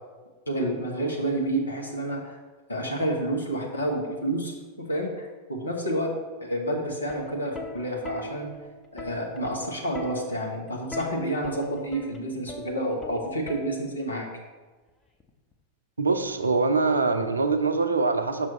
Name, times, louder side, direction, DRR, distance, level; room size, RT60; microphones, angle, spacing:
voice 1, 0.5-2.4 2.7-6.1 6.4-8.5 8.9-14.3, right 1 dB, 75° left, 0 dB, 1.2 m, -29 dB
Plucked string instrument, 7.1-14.1 15.2-15.5, left 2 dB, 15° left, 0.7 m, -41 dB
voice 2, 16.0-18.5, right 4 dB, 75° right, 8 dB, 0.5 m, -23 dB
6.1 x 5.9 x 3.1 m, 1.3 s
figure-of-eight pair, 90°, 0 cm